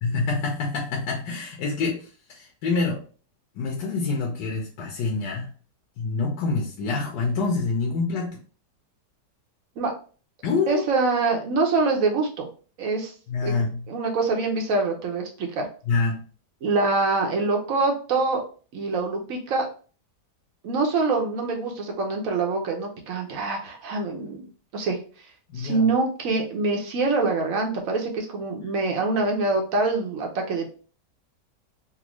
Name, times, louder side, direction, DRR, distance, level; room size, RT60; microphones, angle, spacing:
voice 1, 0.0-3.0 3.5-5.5 6.0-8.4 10.4-10.8 13.3-13.8 15.9-16.2 25.5-25.9, left 4 dB, 80° left, -2 dB, 1.4 m, -26 dB
voice 2, 10.7-12.5 12.8-13.1 13.4-13.6 13.9-15.7 16.6-18.4 18.7-19.6 20.6-24.5 24.7-25.0 25.5-30.7, right 3 dB, 60° right, 2 dB, 1.1 m, -25 dB
4.1 x 2.2 x 3.0 m, 0.39 s
omnidirectional pair, 1.8 m